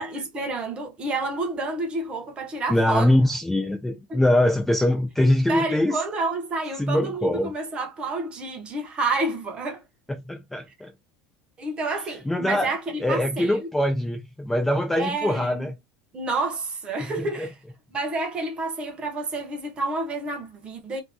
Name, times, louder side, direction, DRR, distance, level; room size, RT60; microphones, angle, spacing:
voice 1, 0.0-3.1 4.1-4.2 5.5-9.8 11.6-13.7 14.9-15.7 16.1-17.5 17.9-21.0, right 3 dB, 25° right, 0.9 m, -29 dB
voice 2, 2.7-6.0 6.8-7.5 10.3-10.9 12.3-12.7 13.0-15.8 17.2-17.5, left 1 dB, 5° left, 0.4 m, -23 dB
2.6 x 2.3 x 3.3 m
supercardioid pair, 155°, 5 cm